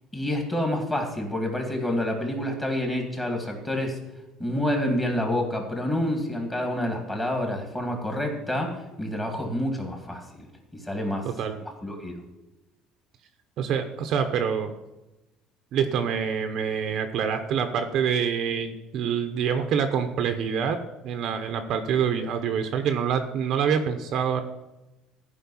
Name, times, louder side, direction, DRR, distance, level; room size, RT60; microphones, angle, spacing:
voice 1, 0.1-4.0 4.4-10.5 10.7-11.3 11.6-12.2, left 1 dB, 10° left, 1 dB, 2.3 m, -28 dB
voice 2, 11.2-11.6 13.6-14.7 15.7-24.4, right 7 dB, 45° right, 7 dB, 0.9 m, -26 dB
14.5 x 5.3 x 7.1 m, 0.99 s
cardioid pair, 175°, 0 cm